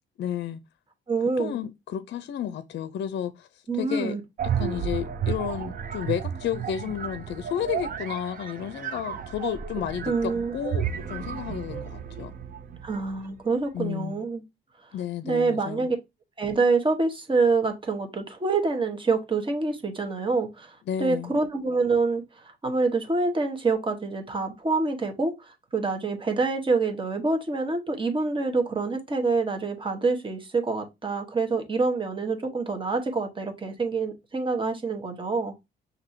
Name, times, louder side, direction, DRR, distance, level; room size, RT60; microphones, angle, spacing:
voice 1, 0.2-0.6 1.4-3.5 3.8-4.2 4.6-12.3 13.7-14.2 14.9-15.9 20.9-21.3, left 10 dB, 60° left, 0.5 m, -32 dB
voice 2, 1.1-1.5 3.7-4.2 10.1-10.6 12.8-14.4 14.8-14.9 15.2-16.0 16.4-35.5, right 3 dB, 25° right, 1.2 m, -26 dB
sound 1, 4.4-13.2, right 8 dB, 45° right, 0.6 m, -32 dB
5.9 x 2.7 x 2.7 m
cardioid pair, 90°, 20 cm